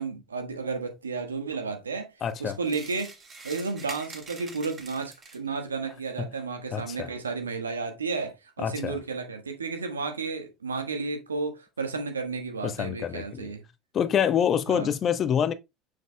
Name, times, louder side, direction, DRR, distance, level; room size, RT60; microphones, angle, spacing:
voice 1, 0.0-2.1 2.4-3.1 3.4-13.6 14.7-14.9, right 4 dB, 90° right, 1.4 m, -32 dB
voice 2, 2.2-2.6 6.7-7.1 8.6-9.0 12.6-13.5 13.9-15.5, left 8 dB, 40° left, 0.9 m, -26 dB
sound 1, 2.6-5.6, right 4 dB, 35° right, 2.3 m, -44 dB
6.7 x 6.6 x 2.2 m
hypercardioid pair, 75°, 0 cm